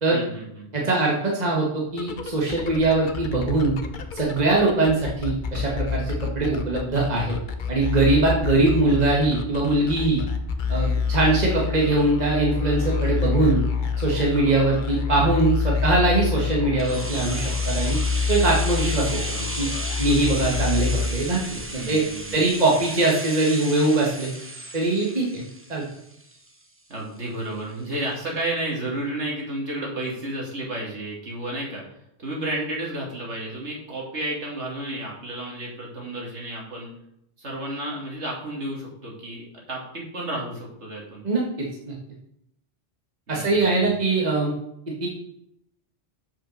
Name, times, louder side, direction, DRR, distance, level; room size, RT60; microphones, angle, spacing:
voice 1, 0.1-0.7 21.8-22.5 26.9-31.8 32.2-36.9 37.4-41.2 43.3-43.9, right 1 dB, 75° right, -2 dB, 2.9 m, -32 dB
voice 2, 0.7-3.8 4.1-7.3 7.7-10.2 10.7-13.6 14.0-18.0 18.3-19.7 20.0-22.0 22.3-24.3 24.7-25.4 25.7-25.8 41.2-41.9 43.3-44.5 45.0-45.1, right 2 dB, 35° right, -3 dB, 1.7 m, -22 dB
sound 1, 2.0-21.6, left 5 dB, 50° left, 0.9 m, -27 dB
sound 2, 16.8-26.6 26.9-27.0, right 1 dB, 10° right, 0.8 m, -34 dB
7.4 x 5.6 x 6.4 m, 0.77 s
omnidirectional pair, 1.2 m